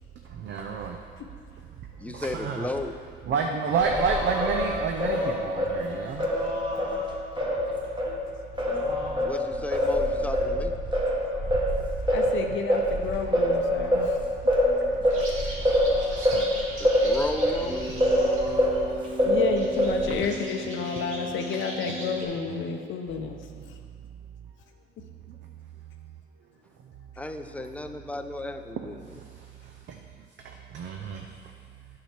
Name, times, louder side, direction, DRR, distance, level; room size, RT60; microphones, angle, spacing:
voice 1, 0.2-1.0 2.0-2.7 3.3-6.3 15.0-15.3 16.2-16.5 17.9-18.3 18.9-19.3 21.0-21.1 22.5-22.8 23.6-23.7 29.0-30.0 30.4-31.5, right 5 dB, 65° right, 3 dB, 0.6 m, -31 dB
voice 2, 2.0-3.0 9.2-10.7 16.8-17.9 27.2-29.2, left 2 dB, 5° left, 7 dB, 0.5 m, -34 dB
Singing, 3.8-8.2 8.6-18.9 19.2-20.2, equal, 25° right, 1.6 m, -25 dB
voice 3, 6.2-6.6 7.3-7.5 8.0-8.1 12.0-14.2 19.2-23.8, left 6 dB, 75° left, 3 dB, 0.7 m, -32 dB
sound 1, 15.0-22.2, right 1 dB, 85° right, 2.1 m, -37 dB
8.9 x 5.9 x 4.3 m, 2.1 s
cardioid pair, 90°, 20 cm